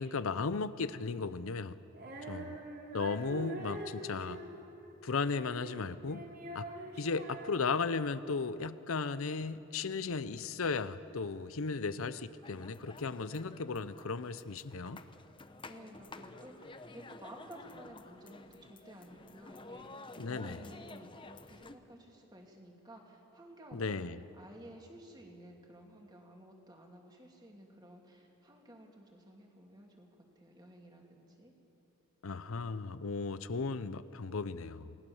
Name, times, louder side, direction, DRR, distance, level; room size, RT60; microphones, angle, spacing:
voice 1, 0.0-1.8 2.3-2.6 2.9-4.4 5.0-6.3 6.5-6.7 7.0-15.0 20.2-20.6 23.7-24.2 32.2-35.0, left 4 dB, 75° left, 14 dB, 0.7 m, -36 dB
Female singing, 1.9-8.4, right 1 dB, 45° right, 3.4 m, -45 dB
sound 1, 12.4-21.8, left 2 dB, 25° left, 0.7 m, -51 dB
voice 2, 15.6-24.0 24.3-31.5, right 1 dB, 20° right, 1 dB, 2.7 m, -54 dB
28.0 x 19.0 x 7.2 m, 2.8 s
head